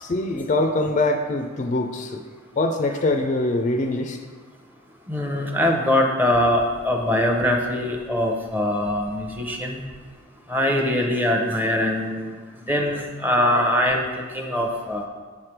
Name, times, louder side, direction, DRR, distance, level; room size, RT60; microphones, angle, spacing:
voice 1, 0.0-2.2 2.6-4.2, left 2 dB, 40° left, 4 dB, 0.4 m, -23 dB
voice 2, 5.1-9.8 10.5-12.3 12.7-15.0, left 1 dB, 10° right, 2 dB, 0.7 m, -22 dB
7.2 x 3.3 x 5.9 m, 1.5 s
head